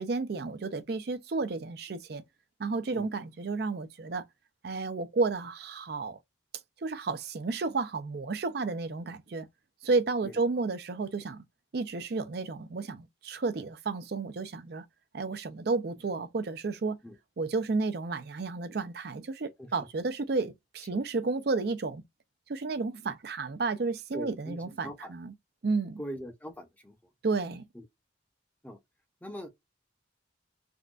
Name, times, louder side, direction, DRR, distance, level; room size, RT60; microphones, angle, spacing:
voice 1, 0.0-2.2 2.6-4.2 4.6-6.2 6.8-9.5 9.8-11.4 11.7-14.8 15.1-17.0 17.4-22.0 22.5-25.3 25.6-26.0 27.2-27.6, right 3 dB, 55° right, 0.4 m, -32 dB
voice 2, 24.1-25.1 26.0-27.0 27.7-27.9 28.6-28.8 29.2-29.5, equal, 10° left, 0.7 m, -41 dB
3.7 x 2.2 x 2.3 m
head